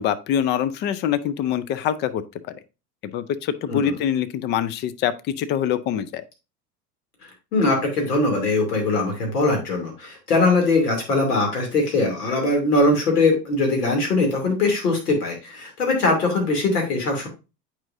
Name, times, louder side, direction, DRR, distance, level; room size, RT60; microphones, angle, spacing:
voice 1, 0.0-2.2 3.0-6.2, left 9 dB, 25° left, 0.4 m, -24 dB
voice 2, 7.5-17.3, left 2 dB, 75° left, 2.7 m, -21 dB
8.8 x 4.9 x 2.6 m
figure-of-eight pair, 85°, 47 cm